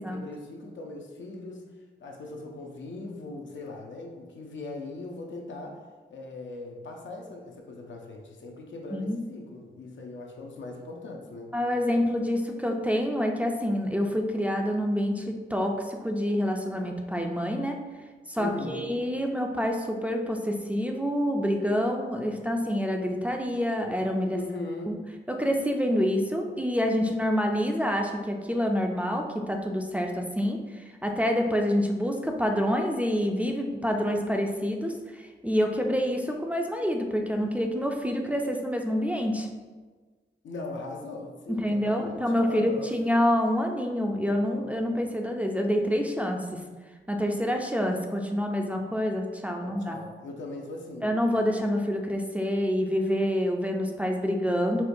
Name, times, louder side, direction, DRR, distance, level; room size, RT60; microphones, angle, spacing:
voice 1, 0.0-1.6 2.0-5.8 6.1-11.5 18.4-18.9 24.3-25.0 40.4-42.9 49.6-51.1, left 2 dB, 85° left, 1 dB, 0.5 m, -39 dB
voice 2, 8.9-9.2 11.5-17.8 18.3-24.4 24.9-25.0 25.3-39.5 41.5-46.6 47.1-50.0 51.0-54.8, equal, 10° right, 2 dB, 0.3 m, -27 dB
4.3 x 2.2 x 2.5 m, 1.4 s
wide cardioid pair, 85°, 19 cm